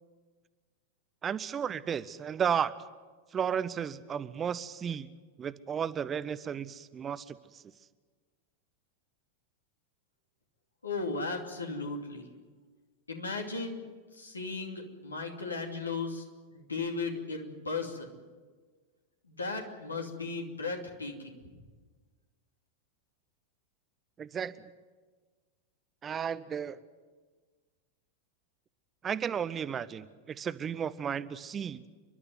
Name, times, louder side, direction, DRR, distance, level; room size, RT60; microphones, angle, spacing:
voice 1, 1.2-2.7 3.3-5.1 5.4-7.6 24.2-24.6 26.0-26.8 29.0-31.8, right 8 dB, 25° right, 15 dB, 0.7 m, -33 dB
voice 2, 10.8-12.3 13.1-13.8 14.1-16.2 16.5-18.1 19.2-21.4, left 3 dB, 80° left, 3 dB, 2.7 m, -36 dB
30.0 x 12.0 x 9.5 m, 1.4 s
figure-of-eight pair, 90°, 0 cm